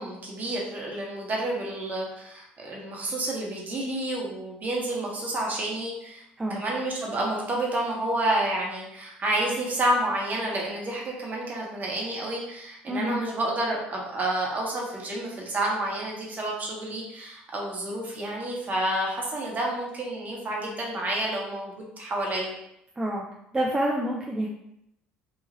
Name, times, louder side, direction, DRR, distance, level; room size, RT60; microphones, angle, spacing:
voice 1, 0.0-6.2 6.5-22.5, right 1 dB, 35° right, -2 dB, 1.0 m, -29 dB
voice 2, 12.9-13.2 23.0-23.3 23.5-24.5, right 1 dB, 15° right, -3 dB, 0.5 m, -27 dB
3.0 x 2.4 x 2.7 m, 0.78 s
hypercardioid pair, 65°, 5 cm